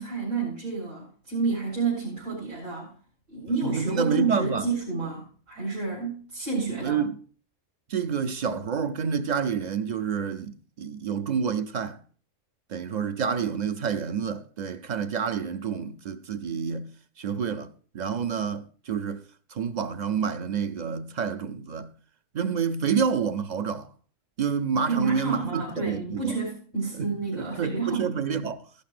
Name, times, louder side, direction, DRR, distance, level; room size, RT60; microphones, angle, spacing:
voice 1, 0.0-2.9 3.3-7.0 24.9-28.1, right 4 dB, 85° right, 4.6 m, -30 dB
voice 2, 3.6-4.7 6.8-7.2 7.9-12.0 12.7-16.9 17.2-19.2 19.5-21.9 22.3-23.9 24.4-26.4 27.0-28.7, right 6 dB, 55° right, 0.5 m, -28 dB
14.5 x 12.0 x 2.5 m
omnidirectional pair, 1.3 m